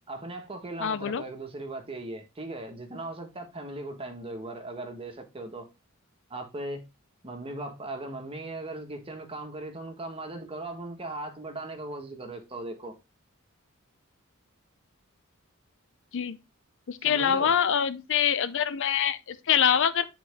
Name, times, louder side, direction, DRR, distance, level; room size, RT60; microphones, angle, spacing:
voice 1, 0.1-5.7 6.3-6.8 7.2-12.9 17.0-17.5, right 2 dB, 25° right, 1.3 m, -38 dB
voice 2, 0.8-1.2 16.1-16.4 16.9-20.1, left 8 dB, 60° left, 0.5 m, -25 dB
8.9 x 4.2 x 3.5 m
head